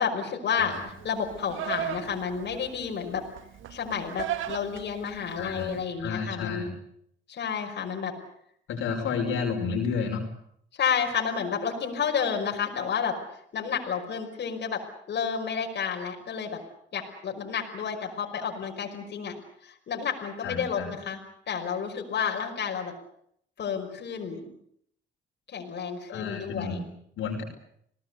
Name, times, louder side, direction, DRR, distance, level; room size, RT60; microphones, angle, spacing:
voice 1, 0.0-3.2 3.7-6.7 7.3-8.1 10.7-13.2 13.5-14.8 15.1-16.6 16.9-19.4 19.6-21.2 21.5-22.9 23.6-24.5 25.5-26.8, left 7 dB, 60° left, 1 dB, 5.5 m, -30 dB
voice 2, 0.6-0.9 5.4-6.7 8.7-10.2 20.4-20.9 26.1-26.8 27.2-27.4, left 5 dB, 80° left, 2 dB, 5.6 m, -31 dB
Livestock farm animals working animals, 0.7-5.8, right 11 dB, 85° right, 2.1 m, -37 dB
28.5 x 19.0 x 8.4 m, 0.70 s
cardioid pair, 90°, 20 cm